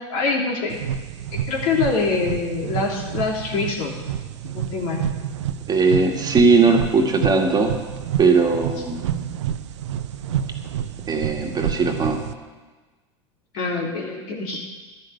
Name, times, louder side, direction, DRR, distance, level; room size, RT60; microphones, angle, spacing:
voice 1, 0.1-0.8 1.3-4.0 4.4-5.0 13.5-14.6, left 4 dB, 60° left, -1 dB, 3.3 m, -25 dB
sound 1, 0.7-12.3, right 9 dB, 75° right, 0.7 m, -29 dB
voice 2, 5.7-7.7 8.2-9.1 11.1-12.2, right 4 dB, 25° right, 2 dB, 1.8 m, -19 dB
12.0 x 6.7 x 9.2 m, 1.3 s
hypercardioid pair, 90°, 15 cm